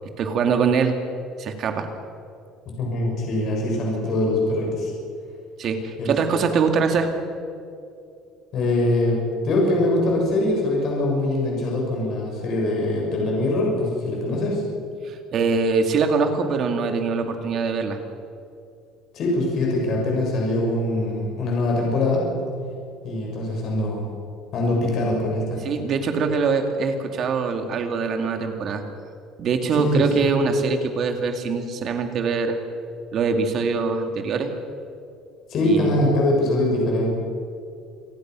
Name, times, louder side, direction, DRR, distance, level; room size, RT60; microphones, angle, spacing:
voice 1, 0.2-1.0 1.4-1.9 5.6-7.1 15.0-18.0 25.6-28.8 29.4-32.6 33.1-34.5 35.6-36.0, right 5 dB, 40° right, 6 dB, 2.5 m, -23 dB
voice 2, 2.7-4.9 6.0-6.1 8.5-14.6 19.1-22.4 23.0-24.1 24.5-25.6 29.8-30.3 35.5-37.1, left 1 dB, 45° left, -2 dB, 6.9 m, -23 dB
28.0 x 18.5 x 6.3 m, 2.5 s
cardioid pair, 160°, 0 cm